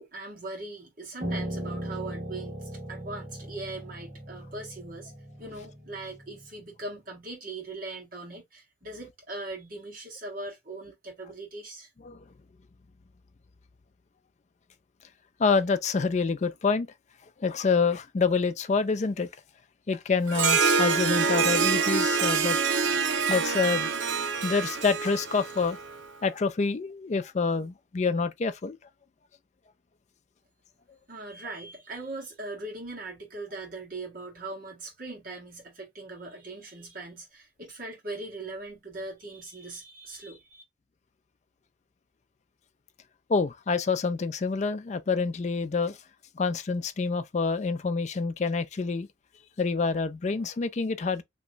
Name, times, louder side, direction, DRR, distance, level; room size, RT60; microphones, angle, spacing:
voice 1, 0.0-5.1 5.4-11.9 31.1-40.6, right 2 dB, 50° right, 1.6 m, -40 dB
Piano, 1.2-6.5, right 1 dB, 35° right, 1.6 m, -38 dB
voice 2, 15.4-16.9 17.4-19.3 19.9-22.6 22.9-25.8 26.2-28.8 43.3-46.0 46.4-49.1 49.6-51.2, left 4 dB, 40° left, 0.4 m, -27 dB
Harp, 20.3-26.0, right 5 dB, 85° right, 0.6 m, -26 dB
3.0 x 2.2 x 3.8 m
head